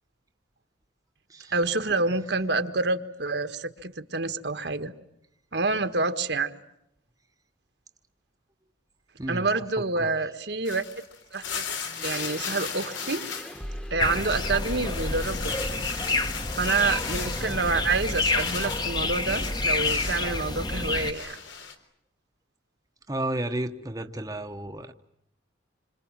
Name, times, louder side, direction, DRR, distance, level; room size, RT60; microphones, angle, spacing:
voice 1, 1.5-4.9 5.5-6.5 9.3-10.8 11.3-11.6 12.0-13.3 13.9-15.8 16.6-21.4, right 3 dB, 60° right, 9 dB, 1.5 m, -28 dB
voice 2, 9.2-9.6 10.0-10.1 23.1-24.9, right 1 dB, 20° right, 4 dB, 1.1 m, -32 dB
sound 1, 10.6-13.6 13.9-20.3 20.7-21.7, left 6 dB, 80° left, 3.8 m, -37 dB
sound 2, 11.8-18.3, equal, 5° left, 1.4 m, -40 dB
sound 3, 14.0-21.1, left 2 dB, 20° left, 1.3 m, -29 dB
27.0 x 26.0 x 7.5 m, 0.79 s
head